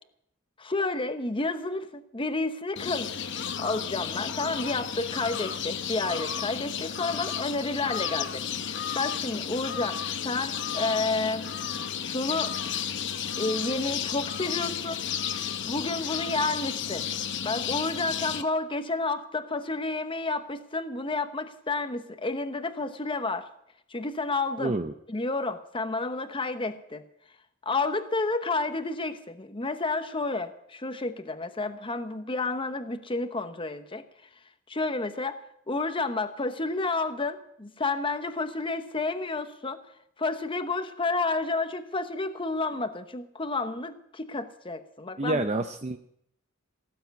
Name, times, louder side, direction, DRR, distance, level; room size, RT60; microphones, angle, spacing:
voice 1, 0.6-3.1 3.6-11.5 12.0-12.5 13.4-15.0 15.6-17.1 17.4-23.5 23.9-24.8 25.1-27.0 27.6-34.0 34.7-39.8 40.2-45.4, left 3 dB, 25° left, 10 dB, 0.9 m, -30 dB
sound 1, 2.8-18.4, left 8 dB, 60° left, 0.9 m, -33 dB
voice 2, 24.6-24.9 45.2-46.0, right 2 dB, 30° right, 7 dB, 0.6 m, -28 dB
17.0 x 7.7 x 9.4 m, 0.75 s
head